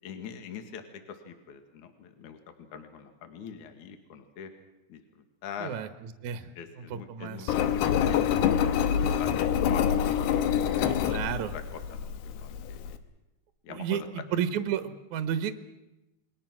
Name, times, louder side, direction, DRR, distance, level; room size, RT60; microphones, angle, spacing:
voice 1, 0.0-4.5 4.9-5.8 6.6-10.0 10.8-11.2 11.5-13.0 13.6-14.1, left 7 dB, 55° left, 6 dB, 2.9 m, -43 dB
voice 2, 6.2-6.5 6.8-7.5 10.8-11.5 13.7-14.0 14.3-15.5, right 9 dB, 65° right, 9 dB, 2.1 m, -32 dB
Engine, 7.5-13.0, left 9 dB, 85° left, 3.1 m, -26 dB
29.0 x 21.5 x 6.1 m, 0.98 s
omnidirectional pair, 4.6 m